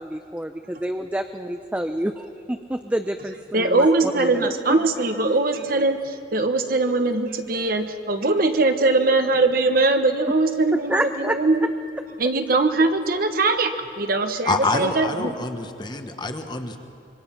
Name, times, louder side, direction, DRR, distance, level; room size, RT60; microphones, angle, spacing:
voice 1, 0.0-4.6 10.9-11.4, right 1 dB, 10° right, 6 dB, 0.6 m, -28 dB
voice 2, 3.5-11.7 12.2-15.3, right 2 dB, 50° right, 7 dB, 1.3 m, -21 dB
voice 3, 14.5-16.8, left 3 dB, 25° left, 6 dB, 1.3 m, -26 dB
25.5 x 24.0 x 5.9 m, 2.8 s
head